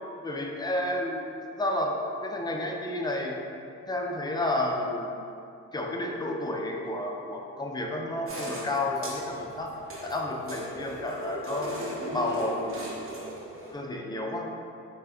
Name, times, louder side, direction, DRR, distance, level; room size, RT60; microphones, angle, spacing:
voice 1, 0.2-1.3 1.6-2.0 2.2-3.4 3.9-5.1 5.7-9.7 10.0-11.7 12.1-13.2 13.7-14.5, left 1 dB, 15° left, 0 dB, 0.4 m, -31 dB
sound 1, 8.3-13.7, right 1 dB, 45° right, 1.0 m, -38 dB
4.9 x 3.3 x 2.3 m, 2.6 s
cardioid pair, 90°, 30 cm